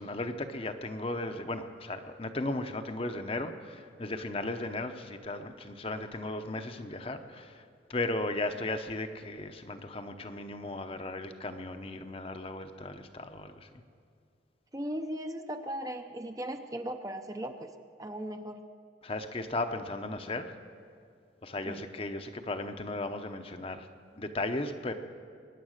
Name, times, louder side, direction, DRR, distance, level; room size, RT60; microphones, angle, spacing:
voice 1, 0.0-13.8 19.0-20.6 21.4-23.9 24.2-24.9, left 2 dB, 30° left, 7 dB, 0.8 m, -36 dB
voice 2, 14.7-17.7 18.0-18.6 21.7-21.8, right 1 dB, 20° right, 6 dB, 0.6 m, -37 dB
22.5 x 9.9 x 6.5 m, 2.4 s
head